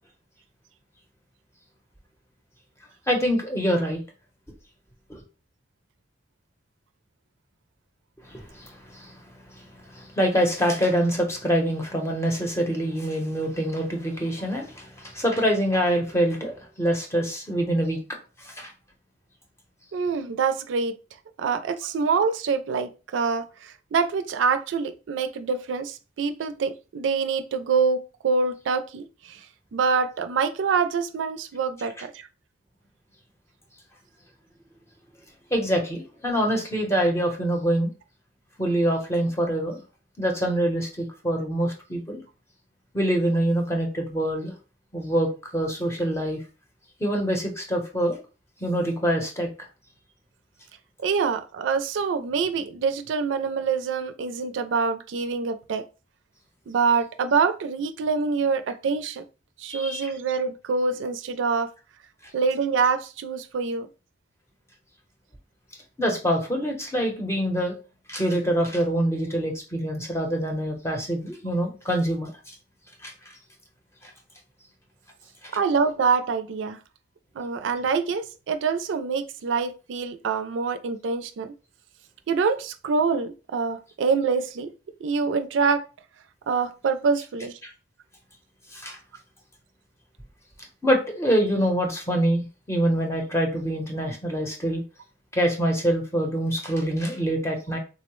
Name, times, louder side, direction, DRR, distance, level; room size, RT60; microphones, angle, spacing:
voice 1, 3.1-4.0 5.1-5.2 8.2-9.2 9.5-18.0 18.4-18.7 32.0-32.1 35.5-37.9 38.6-39.8 40.2-42.2 42.9-44.5 44.9-46.4 47.0-48.2 48.6-49.5 59.7-60.1 66.0-67.7 68.1-72.3 73.0-73.1 74.0-74.1 87.6-87.7 88.7-89.0 90.8-94.8 95.3-97.8, equal, 15° left, 0.7 m, -25 dB
voice 2, 19.9-20.9 21.4-29.4 29.7-32.3 51.0-55.8 56.7-59.2 59.6-61.7 62.3-63.9 75.5-76.8 77.3-81.5 82.3-84.7 85.0-85.8 86.5-87.5, right 5 dB, 90° right, 0.4 m, -25 dB
3.7 x 2.0 x 3.0 m
head